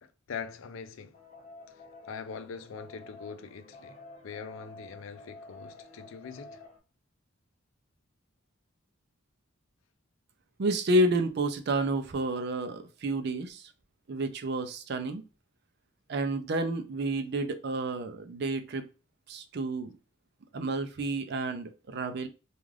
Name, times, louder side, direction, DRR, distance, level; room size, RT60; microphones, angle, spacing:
voice 1, 0.0-1.2 1.7-6.6, left 6 dB, 85° left, 0.4 m, -43 dB
sound 1, 1.1-6.8, left 2 dB, 35° left, 0.7 m, -50 dB
voice 2, 10.6-13.7 14.1-15.2 16.1-18.9 19.3-20.0 20.5-22.3, right 1 dB, 55° right, 0.4 m, -30 dB
2.4 x 2.4 x 3.2 m
head